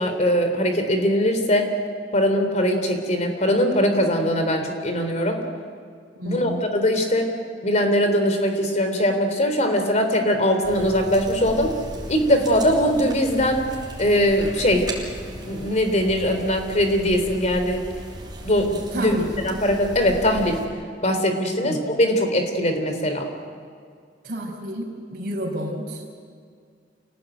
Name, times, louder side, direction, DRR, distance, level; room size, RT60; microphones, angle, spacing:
voice 1, 0.0-1.7 2.1-5.4 6.2-7.3 7.6-11.7 12.1-13.6 14.0-14.9 15.5-17.8 18.4-20.6 21.0-23.3, equal, 40° left, 6 dB, 3.6 m, -21 dB
voice 2, 6.1-6.6 18.9-19.3 21.6-21.8 24.2-26.2, equal, 55° right, -3 dB, 5.2 m, -30 dB
sound 1, 10.6-20.6, right 1 dB, 25° right, 6.5 m, -37 dB
27.5 x 18.5 x 9.2 m, 2.1 s
head